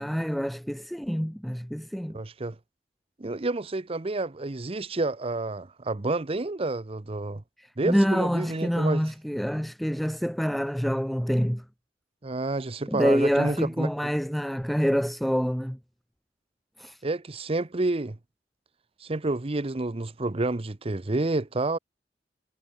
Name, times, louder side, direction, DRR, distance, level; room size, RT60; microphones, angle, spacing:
voice 1, 0.0-2.2 7.6-11.6 12.9-15.8 16.8-17.0, equal, ahead, 0.3 m, -26 dB
voice 2, 2.1-2.6 3.2-7.4 7.8-9.1 12.2-14.1 17.0-18.2 19.0-21.8, right 2 dB, 35° right, 0.8 m, -29 dB
head